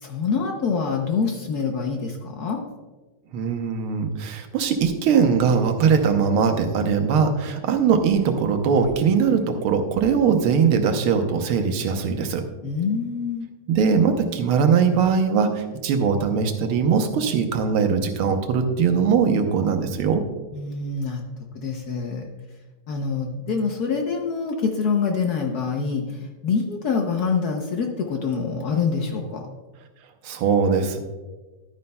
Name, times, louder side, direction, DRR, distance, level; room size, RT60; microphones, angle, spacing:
voice 1, 0.0-2.6 12.6-13.5 20.5-21.2 21.5-22.3 22.9-29.4, left 5 dB, 65° left, 3 dB, 1.0 m, -25 dB
voice 2, 3.3-12.4 13.7-20.2 30.2-31.0, right 6 dB, 85° right, 6 dB, 1.7 m, -21 dB
11.5 x 9.4 x 2.2 m, 1.2 s
omnidirectional pair, 2.3 m